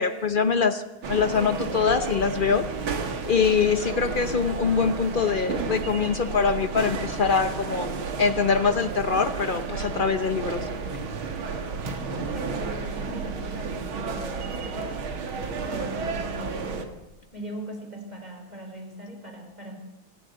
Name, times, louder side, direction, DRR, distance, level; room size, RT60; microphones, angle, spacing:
voice 1, 0.0-2.7 3.3-7.9 8.2-10.7, left 5 dB, 75° left, 10 dB, 0.4 m, -24 dB
sound 1, 1.0-16.8, right 5 dB, 85° right, 2.5 m, -32 dB
voice 2, 11.9-17.0 17.3-19.8, right 1 dB, 20° right, 4 dB, 4.3 m, -39 dB
26.0 x 12.5 x 8.0 m, 0.99 s
omnidirectional pair, 2.2 m